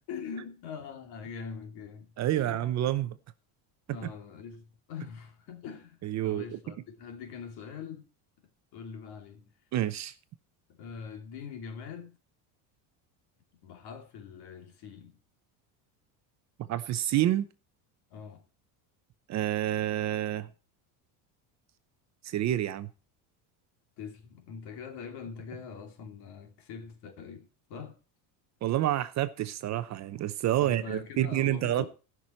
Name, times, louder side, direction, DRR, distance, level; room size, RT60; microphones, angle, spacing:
voice 1, 0.1-2.7 3.1-3.2 3.9-8.1 8.7-9.5 10.7-12.2 13.6-15.2 18.1-18.4 24.0-28.0 30.6-31.9, left 6 dB, 60° left, 2.6 m, -43 dB
voice 2, 2.2-3.1 6.0-6.4 9.7-10.1 16.6-17.5 19.3-20.5 22.2-22.9 28.6-31.9, right 13 dB, 40° right, 0.7 m, -28 dB
18.0 x 6.1 x 4.3 m
cardioid pair, 145°, 45 cm